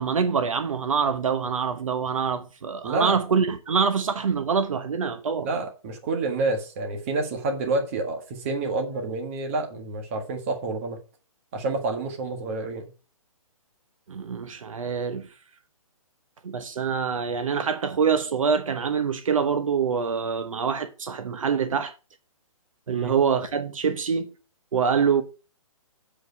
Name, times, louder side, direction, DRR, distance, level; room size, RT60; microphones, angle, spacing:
voice 1, 0.0-5.5 14.1-15.3 16.4-21.9 22.9-24.3 24.7-25.2, right 6 dB, 65° right, 1.1 m, -25 dB
voice 2, 2.8-3.2 5.4-11.0 11.5-12.9 22.9-23.1, right 3 dB, 25° right, 1.6 m, -28 dB
7.6 x 5.0 x 6.5 m
hypercardioid pair, 175°, 18 cm